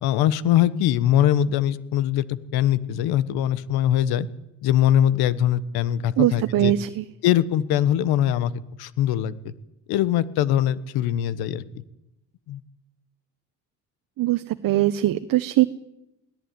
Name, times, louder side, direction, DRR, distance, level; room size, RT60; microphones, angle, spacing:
voice 1, 0.0-4.3 4.6-6.7 7.2-8.5 8.8-9.5 9.9-11.6 12.5-12.6, left 11 dB, 80° left, 16 dB, 1.4 m, -22 dB
voice 2, 6.2-7.0 14.2-15.7, right 15 dB, 60° right, 12 dB, 1.0 m, -21 dB
22.0 x 18.0 x 9.4 m, 0.90 s
supercardioid pair, 80°, 37 cm